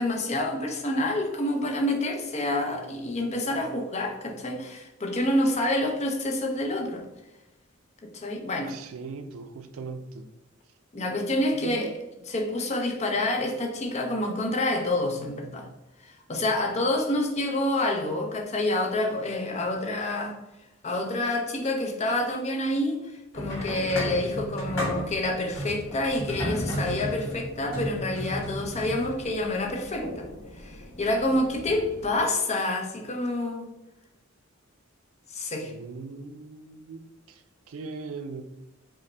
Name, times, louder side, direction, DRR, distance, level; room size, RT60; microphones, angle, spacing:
voice 1, 0.0-7.1 8.0-8.7 10.9-12.0 12.3-15.7 16.1-20.4 20.8-30.3 30.6-33.7 35.3-35.7, left 1 dB, 35° left, 3 dB, 0.6 m, -28 dB
voice 2, 8.7-10.3 11.5-11.9 35.6-37.4 37.7-38.4, right 4 dB, 80° right, 8 dB, 0.4 m, -39 dB
sound 1, 23.3-32.2, equal, 80° left, 1.2 m, -35 dB
5.0 x 2.1 x 3.2 m, 0.95 s
head